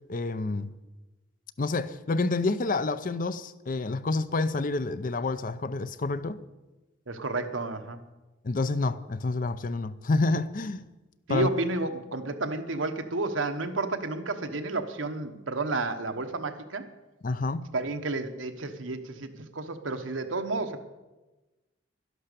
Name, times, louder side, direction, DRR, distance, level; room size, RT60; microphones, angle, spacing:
voice 1, 0.1-0.7 1.6-6.4 8.4-10.8 11.3-11.5 17.2-17.6, left 3 dB, 45° left, 0.6 m, -28 dB
voice 2, 7.1-8.0 11.3-16.8 17.7-20.8, right 2 dB, 85° right, 1.2 m, -31 dB
11.5 x 11.5 x 6.8 m
head